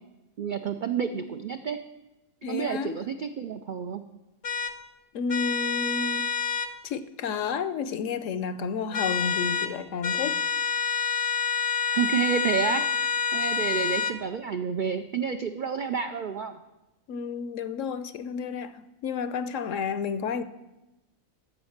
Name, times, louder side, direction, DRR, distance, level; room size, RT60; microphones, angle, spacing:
voice 1, 0.4-1.8 2.5-4.0 11.9-16.6, right 6 dB, 70° right, 0.4 m, -30 dB
voice 2, 2.4-3.0 5.1-6.3 6.8-10.4 17.1-20.4, left 5 dB, 70° left, 0.9 m, -31 dB
sound 1, 4.4-4.7 5.3-6.7 8.9-9.7 10.0-14.2, left 6 dB, 50° left, 0.7 m, -27 dB
13.5 x 5.2 x 7.2 m
omnidirectional pair, 1.5 m